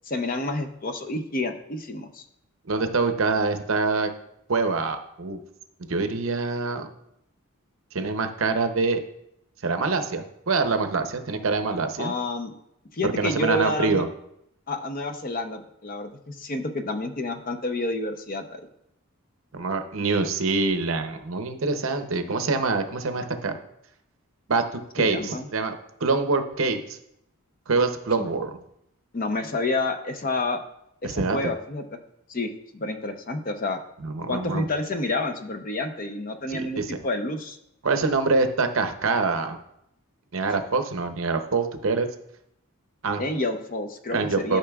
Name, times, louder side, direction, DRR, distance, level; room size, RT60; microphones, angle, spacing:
voice 1, 0.1-2.2 12.0-12.5 12.9-14.0 14.7-18.6 23.2-23.3 25.0-25.5 28.2-28.3 29.1-30.6 31.0-31.9 32.3-33.8 34.3-37.6 43.2-44.6, left 2 dB, 40° left, 6 dB, 0.6 m, -29 dB
voice 2, 2.7-4.1 4.5-5.4 5.9-6.9 7.9-9.0 9.6-12.1 13.0-14.1 19.5-23.6 24.5-25.7 26.0-27.0 27.7-28.6 31.0-31.5 34.0-34.7 36.5-37.0 37.8-39.6 40.3-42.1 43.0-43.2 44.1-44.6, right 3 dB, 65° right, 7 dB, 0.7 m, -25 dB
12.0 x 5.7 x 2.3 m, 0.78 s
head